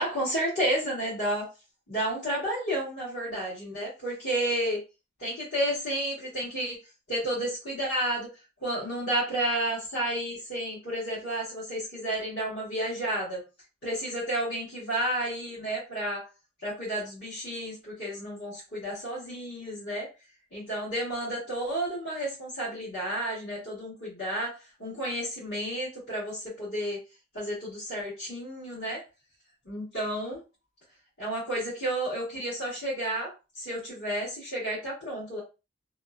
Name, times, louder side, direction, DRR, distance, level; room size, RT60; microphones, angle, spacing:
voice 1, 0.0-1.5 1.9-4.8 5.2-6.8 7.1-8.3 8.6-13.4 13.8-16.2 16.6-20.1 20.5-27.0 27.3-29.0 29.6-30.4 31.2-35.4, right 1 dB, 55° left, -10 dB, 1.4 m, -31 dB
2.9 x 2.1 x 2.4 m, 0.29 s
head